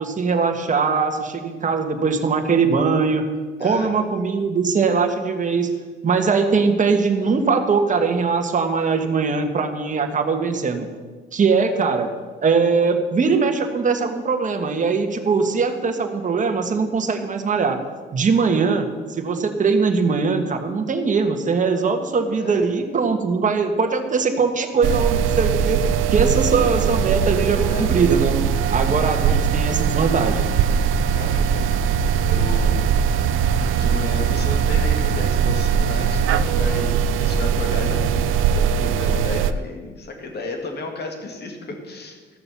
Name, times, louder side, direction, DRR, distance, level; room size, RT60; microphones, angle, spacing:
voice 1, 0.0-3.2 3.6-5.7 6.0-10.9 11.3-12.1 12.4-17.8 18.1-18.9 19.2-25.8 26.1-28.3 28.7-30.5, right 5 dB, 40° right, 5 dB, 1.5 m, -21 dB
voice 2, 3.6-3.9 22.4-22.7 27.5-28.0 28.9-29.3 31.1-33.4 33.7-42.4, left 3 dB, 55° left, 3 dB, 2.4 m, -33 dB
sound 1, 24.8-39.5, right 7 dB, 85° right, 0.5 m, -20 dB
14.0 x 6.9 x 7.0 m, 1.4 s
cardioid pair, 90°, 20 cm